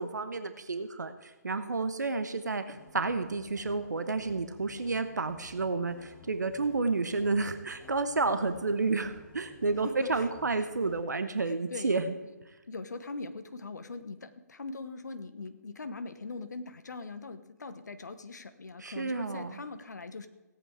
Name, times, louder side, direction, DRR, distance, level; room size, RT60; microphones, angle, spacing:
voice 1, 0.0-12.1 18.8-19.6, right 3 dB, 70° right, 9 dB, 1.1 m, -31 dB
sound 1, 2.7-11.0, left 4 dB, 10° left, 1.4 m, -54 dB
voice 2, 9.8-10.3 10.6-10.7 11.5-12.0 12.7-20.3, left 3 dB, 70° left, 10 dB, 1.0 m, -41 dB
17.0 x 8.8 x 4.8 m, 1.2 s
figure-of-eight pair, 140°, 10 cm